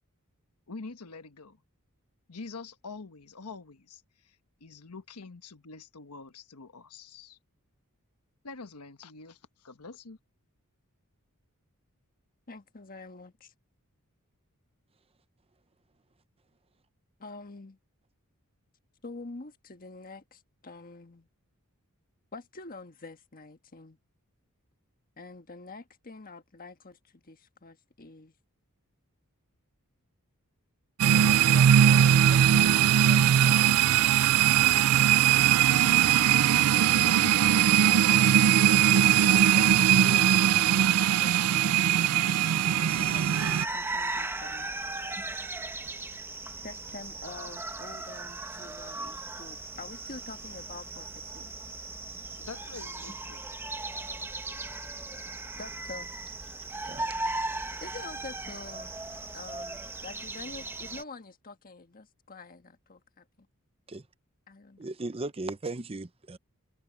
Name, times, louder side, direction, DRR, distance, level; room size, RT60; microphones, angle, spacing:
voice 1, 0.7-1.6 2.3-7.4 8.4-10.2 52.4-53.5, left 4 dB, 85° left, 1.2 m, -45 dB
voice 2, 12.5-13.5 17.2-17.8 19.0-21.3 22.3-24.0 25.2-28.3 31.5-31.7 32.3-32.7 33.0-33.8 34.6-36.4 36.7-39.0 39.6-39.7 40.0-41.8 42.7-44.7 46.6-51.5 55.5-56.1 57.8-59.0 59.3-63.5 64.5-64.9, left 3 dB, 40° left, 1.4 m, -46 dB
sound 1, 31.0-43.6, right 10 dB, 85° right, 0.4 m, -21 dB
sound 2, 42.9-61.0, right 2 dB, 10° right, 1.0 m, -37 dB
voice 3, 56.8-57.1 63.9-64.1 64.8-66.4, right 2 dB, 25° right, 0.7 m, -37 dB
head